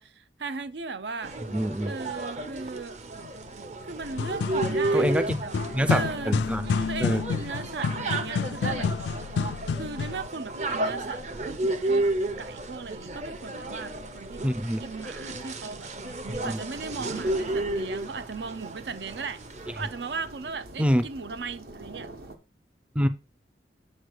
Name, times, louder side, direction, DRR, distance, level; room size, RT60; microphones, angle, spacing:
voice 1, 0.0-1.4 1.8-3.0 3.8-5.6 5.9-9.3 9.8-12.1 12.4-14.5 14.8-15.9 16.4-19.4 19.8-22.1, right 4 dB, 80° right, 0.7 m, -37 dB
sound 1, 1.2-20.5, right 2 dB, 40° right, 0.9 m, -32 dB
voice 2, 1.5-1.9 4.9-5.4 5.7-6.6 7.0-7.2 14.4-14.8 16.3-16.6 20.8-21.0 23.0-23.1, equal, 5° right, 0.4 m, -26 dB
sound 2, 4.0-10.3, left 5 dB, 75° left, 0.3 m, -29 dB
sound 3, 16.7-22.4, right 2 dB, 60° right, 1.2 m, -45 dB
8.2 x 3.2 x 6.4 m
head